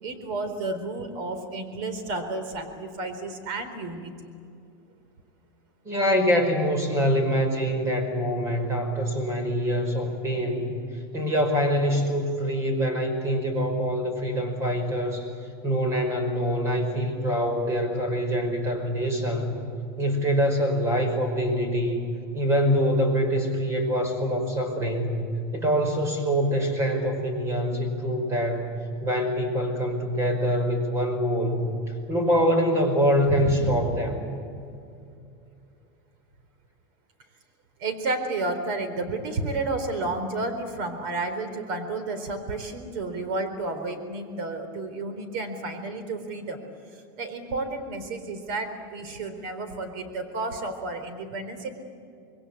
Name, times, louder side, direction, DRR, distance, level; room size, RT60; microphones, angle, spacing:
voice 1, 0.0-4.1 33.3-34.0 37.8-46.6 47.2-51.7, right 2 dB, 60° right, 9 dB, 4.1 m, -31 dB
voice 2, 5.8-10.7 11.1-15.3 15.6-19.5 20.0-22.0 22.3-25.2 25.5-28.7 29.0-31.7 32.1-34.2, equal, 20° right, 5 dB, 5.3 m, -25 dB
26.5 x 21.5 x 8.6 m, 2.5 s
supercardioid pair, 155°, 13 cm